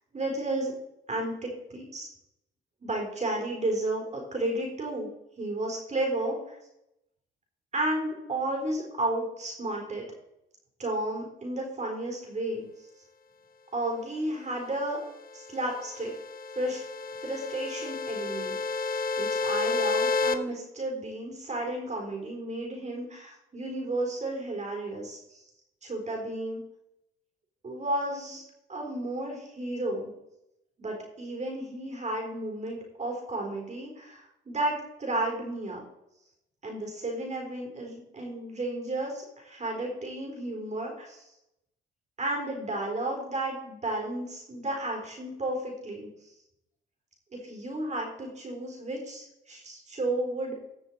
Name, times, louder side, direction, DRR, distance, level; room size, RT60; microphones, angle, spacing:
voice 1, 0.1-0.7 1.1-2.1 2.8-5.1 5.4-6.6 7.7-10.1 10.8-12.7 13.7-15.0 15.3-16.1 16.6-16.8 17.2-25.4 25.8-26.6 27.6-28.4 28.7-30.1 30.8-35.8 36.6-41.2 42.2-46.1 47.4-50.6, right 1 dB, 35° right, 0 dB, 4.1 m, -33 dB
sound 1, 15.4-20.4, left 4 dB, 45° left, 1.0 m, -30 dB
15.0 x 6.6 x 4.6 m, 0.84 s
cardioid pair, 90°, 20 cm